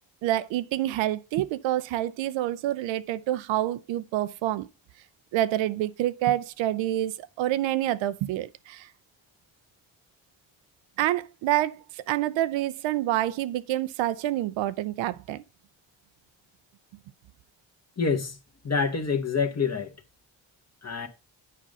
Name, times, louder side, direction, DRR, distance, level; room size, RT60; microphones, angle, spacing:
voice 1, 0.2-4.7 5.3-8.9 11.0-15.4, right 13 dB, 75° right, 0.6 m, -27 dB
voice 2, 18.0-18.4 18.6-19.9 20.8-21.1, left 5 dB, 35° left, 1.5 m, -26 dB
7.5 x 5.4 x 5.2 m
supercardioid pair, 50°, 46 cm